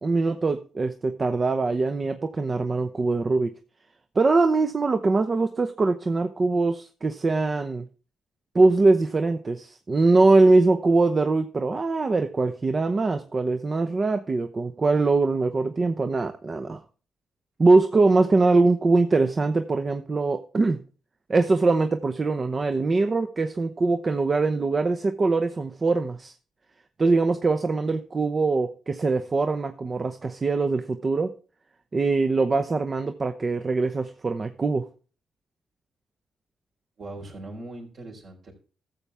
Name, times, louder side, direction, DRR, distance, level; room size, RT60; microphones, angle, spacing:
voice 1, 0.0-3.5 4.1-7.9 8.5-16.8 17.6-20.8 21.3-26.3 27.0-31.3 31.9-34.9, right 3 dB, 40° right, 8 dB, 0.7 m, -22 dB
voice 2, 37.0-38.5, right 2 dB, 60° right, 0 dB, 3.8 m, -40 dB
13.0 x 7.2 x 3.5 m, 0.37 s
supercardioid pair, 55°, 0 cm